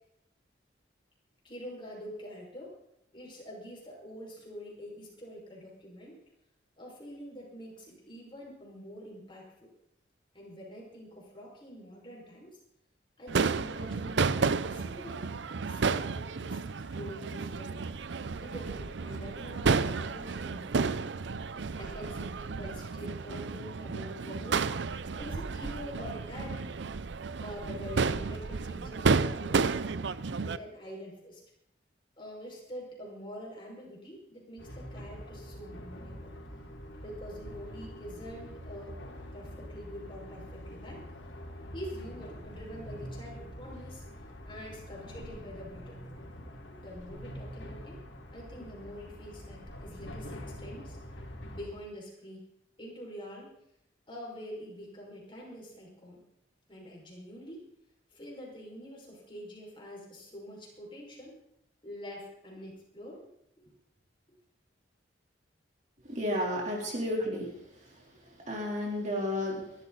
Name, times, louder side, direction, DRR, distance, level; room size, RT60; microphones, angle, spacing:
voice 1, 1.4-2.7 3.1-6.2 6.8-9.7 10.3-12.6 13.2-15.2 15.7-17.9 18.4-21.0 21.8-24.7 25.2-26.8 27.4-29.8 30.4-31.4 32.2-36.3 37.0-38.9 39.3-41.0 41.7-44.0 44.4-46.2 46.7-48.0 48.3-51.0 51.5-52.4 52.8-53.5 54.1-56.2 56.7-57.6 58.1-61.4 61.8-63.3 63.6-63.7 66.8-66.9, equal, 30° left, -2 dB, 5.4 m, -45 dB
Crowd / Fireworks, 13.3-30.6, right 4 dB, 75° right, 0.6 m, -31 dB
sound 1, 34.6-51.7, equal, 85° left, 3.0 m, -45 dB
voice 2, 66.1-67.5 68.2-69.9, left 1 dB, 40° right, -1 dB, 3.6 m, -32 dB
22.5 x 12.0 x 4.1 m, 0.76 s
head